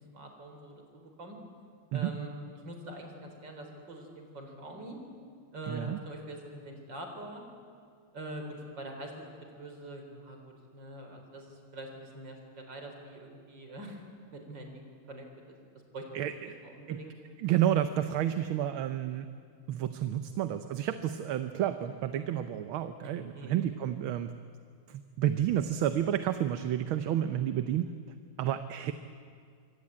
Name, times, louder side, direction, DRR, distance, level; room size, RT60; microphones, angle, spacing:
voice 1, 0.0-1.4 1.9-2.3 2.6-5.0 5.5-7.4 8.1-9.2 9.5-14.0 14.3-14.8 15.1-15.6 15.9-16.1 16.6-17.1 23.3-23.6, right 1 dB, 55° right, 4 dB, 4.6 m, -44 dB
voice 2, 5.7-6.0 16.1-16.6 16.9-17.0 17.4-19.3 19.7-24.3 24.9-27.9 28.4-28.9, right 11 dB, 75° right, 10 dB, 1.7 m, -30 dB
26.0 x 25.0 x 8.7 m, 2.2 s
omnidirectional pair, 2.3 m